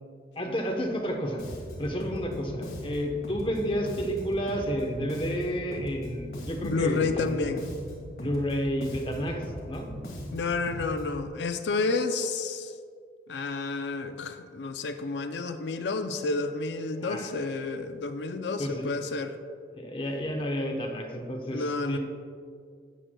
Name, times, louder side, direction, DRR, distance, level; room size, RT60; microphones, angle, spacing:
voice 1, 0.4-1.4 1.8-7.4 8.2-9.9 17.0-17.3 18.6-19.0 19.7-22.0, equal, 30° left, 2 dB, 0.9 m, -31 dB
Bass guitar, 1.4-11.3, equal, 60° left, 1.7 m, -39 dB
voice 2, 6.6-7.7 10.3-12.7 13.3-19.4 21.5-22.0, left 3 dB, 80° left, 7 dB, 0.4 m, -30 dB
12.5 x 7.8 x 2.2 m, 2.2 s
head